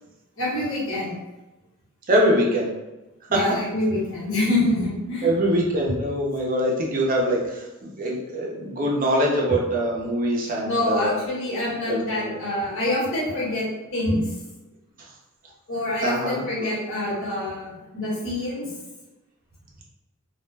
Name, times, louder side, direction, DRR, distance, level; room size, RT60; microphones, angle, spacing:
voice 1, 0.4-1.1 3.3-5.3 10.6-13.6 13.9-14.3 15.7-18.7, left 1 dB, 60° left, -7 dB, 1.2 m, -26 dB
voice 2, 2.1-2.8 3.3-3.4 5.2-11.2 11.9-12.4 15.0-15.1 16.0-16.7, equal, 40° right, -2 dB, 0.5 m, -23 dB
2.3 x 2.1 x 3.2 m, 1.0 s
head